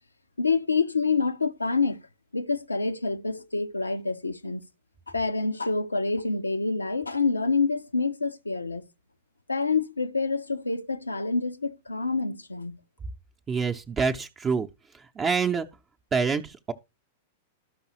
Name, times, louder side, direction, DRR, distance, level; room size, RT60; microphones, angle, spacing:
voice 1, 0.4-2.0 2.3-4.7 5.1-8.8 9.5-12.8, left 4 dB, 85° left, 0.7 m, -27 dB
voice 2, 13.5-14.7 14.9-15.7 16.1-16.7, right 5 dB, 20° right, 0.7 m, -26 dB
13.0 x 5.4 x 2.9 m
figure-of-eight pair, 100°, 0 cm